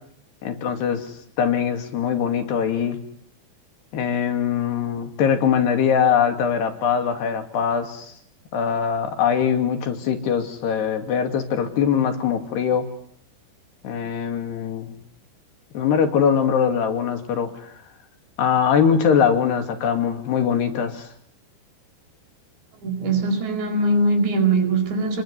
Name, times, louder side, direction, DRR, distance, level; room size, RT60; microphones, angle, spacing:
voice 1, 0.4-1.0 1.4-3.0 3.9-8.1 8.5-12.9 13.8-15.0 15.7-17.5 18.4-21.0, left 7 dB, 75° left, 6 dB, 4.8 m, -22 dB
voice 2, 22.8-25.2, right 2 dB, 80° right, 6 dB, 7.0 m, -21 dB
28.5 x 22.0 x 8.5 m, 0.67 s
omnidirectional pair, 4.9 m